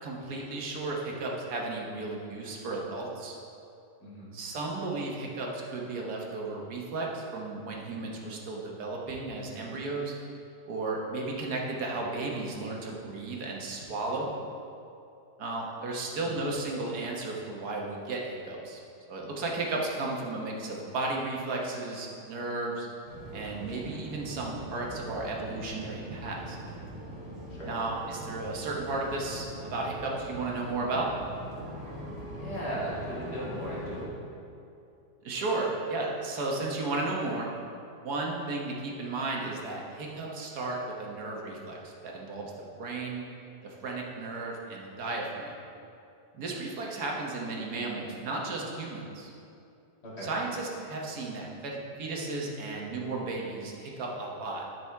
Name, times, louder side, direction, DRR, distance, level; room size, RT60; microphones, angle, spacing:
voice 1, 0.0-3.3 4.3-10.1 10.7-14.3 15.4-18.8 19.1-22.9 23.3-26.6 27.7-31.1 35.2-37.5 38.0-43.2 43.6-45.5 46.3-49.3 50.2-54.7, right 2 dB, 75° right, -1 dB, 1.7 m, -34 dB
voice 2, 4.0-4.4 16.1-16.5 27.5-27.7 32.3-34.1 50.0-50.3, equal, 90° left, -7 dB, 2.7 m, -38 dB
sound 1, 23.0-34.1, right 1 dB, 50° right, 2.5 m, -42 dB
11.0 x 6.1 x 3.5 m, 2.6 s
omnidirectional pair, 1.7 m